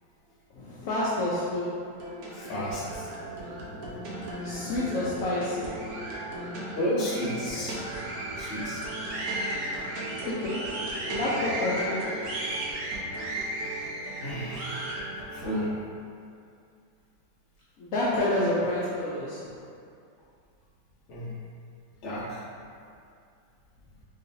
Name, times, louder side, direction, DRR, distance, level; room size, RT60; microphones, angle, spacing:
voice 1, 0.5-1.8 4.4-5.8 10.2-10.7 11.1-12.2 17.8-19.6, left 1 dB, 70° left, -8 dB, 0.8 m, -29 dB
sound 1, 1.9-15.6, right 1 dB, 65° right, 1.1 m, -35 dB
voice 2, 2.3-3.1 6.8-7.8 8.4-8.9 9.7-9.9 14.2-14.9 15.3-15.8 21.1-21.3 22.0-22.5, equal, 50° left, -7 dB, 1.0 m, -32 dB
4.0 x 3.7 x 2.6 m, 2.4 s
omnidirectional pair, 2.0 m